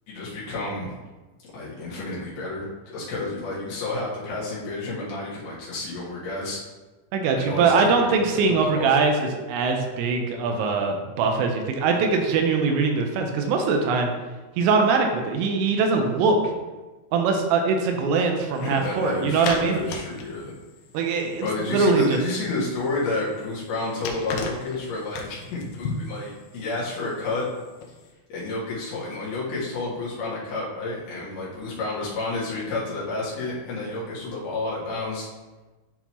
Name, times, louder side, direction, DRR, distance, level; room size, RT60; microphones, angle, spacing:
voice 1, 0.1-1.0 1.5-6.6 7.3-8.2 8.6-9.0 18.6-20.5 21.4-27.5 28.3-35.3, left 2 dB, 65° left, -6 dB, 2.8 m, -30 dB
voice 2, 7.1-14.1 14.6-16.5 17.1-19.8 20.9-22.2, right 4 dB, 80° right, 3 dB, 3.3 m, -22 dB
sound 1, 18.6-28.1, left 4 dB, 85° left, 2.6 m, -38 dB
11.0 x 3.8 x 3.0 m, 1.2 s
omnidirectional pair, 5.9 m